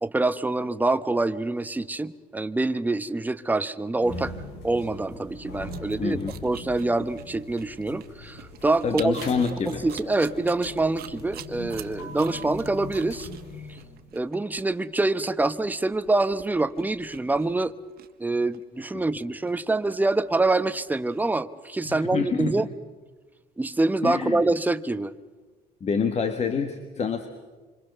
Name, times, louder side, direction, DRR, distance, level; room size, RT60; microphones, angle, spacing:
voice 1, 0.0-4.3 4.6-9.2 9.6-13.3 13.7-13.8 14.1-17.7 18.2-22.7 23.6-25.1, right 2 dB, 10° right, 12 dB, 0.9 m, -25 dB
sound 1, 4.0-14.1, left 2 dB, 90° left, 5.4 m, -41 dB
sound 2, 5.5-21.2, right 12 dB, 65° right, 1.6 m, -46 dB
voice 2, 6.0-6.3 8.8-9.8 18.9-19.0 21.9-22.7 24.0-24.4 25.8-27.3, left 5 dB, 40° left, 8 dB, 1.6 m, -27 dB
26.5 x 25.5 x 6.8 m, 1.3 s
cardioid pair, 110°, 17 cm